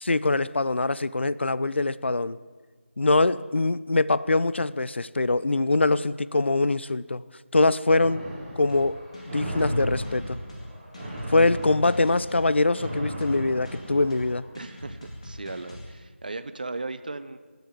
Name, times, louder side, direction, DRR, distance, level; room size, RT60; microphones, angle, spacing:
voice 1, 0.0-2.4 3.0-7.2 7.5-8.2 8.6-9.0 9.3-10.4 11.3-14.4, left 2 dB, 55° left, 18 dB, 0.5 m, -23 dB
sound 1, 8.0-14.4, equal, 20° right, 2.9 m, -35 dB
sound 2, 8.7-15.9, left 1 dB, 30° left, 2.4 m, -43 dB
voice 2, 14.6-17.4, right 3 dB, 40° right, 12 dB, 0.6 m, -37 dB
17.5 x 8.0 x 8.2 m, 1.5 s
figure-of-eight pair, 170°, 7 cm